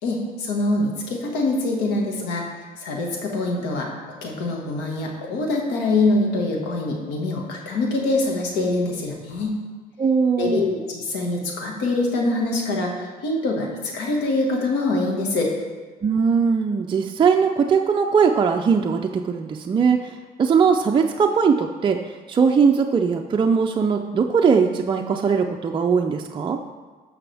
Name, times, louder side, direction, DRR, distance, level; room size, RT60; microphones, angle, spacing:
voice 1, 0.0-2.4 2.8-9.6 10.4-15.5, left 2 dB, 90° left, 0 dB, 1.8 m, -24 dB
voice 2, 10.0-10.7 16.0-20.1 20.4-22.0 22.3-26.6, right 6 dB, 30° right, 3 dB, 0.5 m, -20 dB
13.5 x 6.2 x 3.4 m, 1.4 s
cardioid pair, 110°, 17 cm